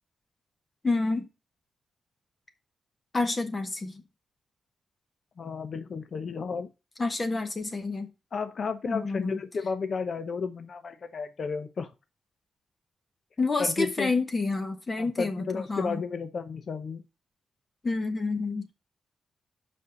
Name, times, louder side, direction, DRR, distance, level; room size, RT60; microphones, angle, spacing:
voice 1, 0.8-1.3 3.1-4.0 7.0-8.1 8.9-9.4 13.4-16.0 17.8-18.7, left 3 dB, 30° left, 1.3 m, -29 dB
voice 2, 5.4-6.7 8.3-11.9 13.6-14.1 15.0-17.0, left 5 dB, 55° left, 0.8 m, -32 dB
5.5 x 5.3 x 6.4 m
cardioid pair, 90°, 0 cm